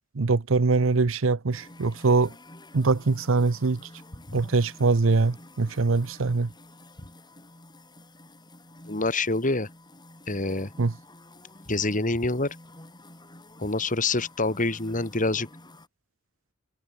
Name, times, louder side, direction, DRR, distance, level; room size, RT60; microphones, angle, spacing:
voice 1, 0.1-2.3 2.7-3.9 4.3-6.5 10.8-10.9, right 3 dB, 75° right, 0.8 m, -23 dB
sound 1, 1.5-15.9, left 1 dB, 20° left, 8.0 m, -49 dB
voice 2, 8.9-9.7 10.3-10.7 11.7-12.6 13.6-15.5, left 2 dB, 40° left, 2.7 m, -26 dB
head